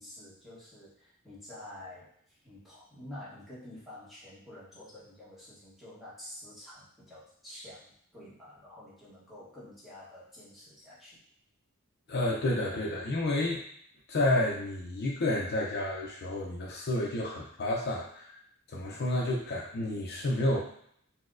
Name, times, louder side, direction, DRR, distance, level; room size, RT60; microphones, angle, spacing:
voice 1, 0.0-11.2, left 1 dB, ahead, -9 dB, 1.0 m, -49 dB
voice 2, 12.1-13.6 14.1-18.3 18.7-20.6, left 1 dB, 50° left, -2 dB, 0.4 m, -30 dB
4.1 x 2.1 x 2.4 m, 0.67 s
head